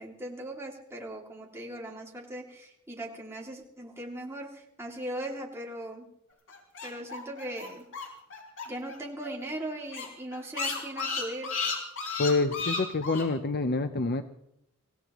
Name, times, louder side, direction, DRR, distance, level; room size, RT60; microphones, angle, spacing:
voice 1, 0.0-6.1 6.8-7.8 8.7-11.5, right 1 dB, 10° right, -2 dB, 2.5 m, -39 dB
sound 1, 6.5-9.0 9.2-9.3 9.6-9.7 9.9-13.3, left 4 dB, 65° left, 4.3 m, -33 dB
voice 2, 12.2-14.2, left 3 dB, 45° left, 9 dB, 0.6 m, -27 dB
25.0 x 17.0 x 3.0 m, 0.79 s
head